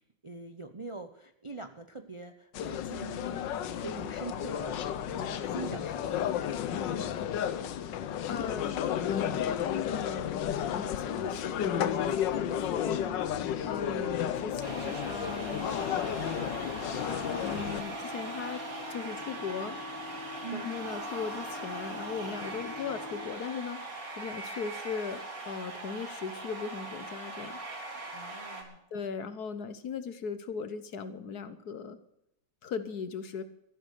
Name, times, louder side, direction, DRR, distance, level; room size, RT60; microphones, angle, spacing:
voice 1, 0.0-3.4 3.7-6.3 20.4-20.7 28.1-28.8, right 4 dB, 30° right, 7 dB, 0.5 m, -43 dB
sound 1, 2.5-17.8, left 9 dB, 80° left, 1.5 m, -32 dB
voice 2, 8.2-9.6 9.9-10.4 10.7-16.0 16.9-17.0 17.3-18.6 18.9-19.8 20.5-27.6 28.9-32.0 32.6-33.4, left 6 dB, 60° left, 12 dB, 1.5 m, -38 dB
sound 2, 12.8-23.3, left 5 dB, 45° left, 5.6 m, -46 dB
sound 3, 14.6-28.6, right 2 dB, 50° right, 2.7 m, -40 dB
14.0 x 11.5 x 6.7 m, 0.81 s
omnidirectional pair, 1.9 m